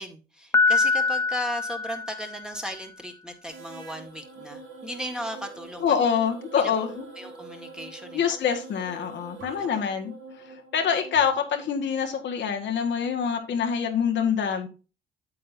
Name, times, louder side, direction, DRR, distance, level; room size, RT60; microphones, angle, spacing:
voice 1, 0.0-6.0 6.6-6.7 7.2-8.2 9.3-9.8, equal, 5° right, 1.8 m, -36 dB
Piano, 0.5-2.6, left 4 dB, 15° left, 0.5 m, -24 dB
sound 1, 3.5-11.9, right 3 dB, 85° right, 4.1 m, -45 dB
voice 2, 5.8-7.1 8.1-10.1 10.4-14.7, left 7 dB, 65° left, 1.8 m, -25 dB
8.7 x 7.8 x 2.7 m
cardioid pair, 90°, 20 cm